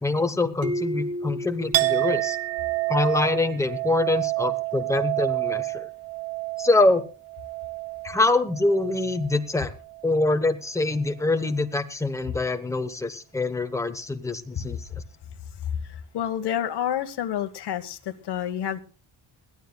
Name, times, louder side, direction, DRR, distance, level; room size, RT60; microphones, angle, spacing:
voice 1, 0.0-2.4 2.9-5.9 6.6-7.1 8.0-9.7 10.0-15.0, left 2 dB, 5° left, 8 dB, 0.9 m, -24 dB
sound 1, 0.6-3.2, left 1 dB, 40° right, 1.7 m, -33 dB
Chink clink, 1.7-9.4 9.8-10.4, right 20 dB, 80° right, 0.7 m, -29 dB
voice 2, 15.8-18.8, left 10 dB, 60° left, 9 dB, 1.4 m, -29 dB
21.5 x 15.0 x 2.3 m, 0.36 s
wide cardioid pair, 170°, 45 cm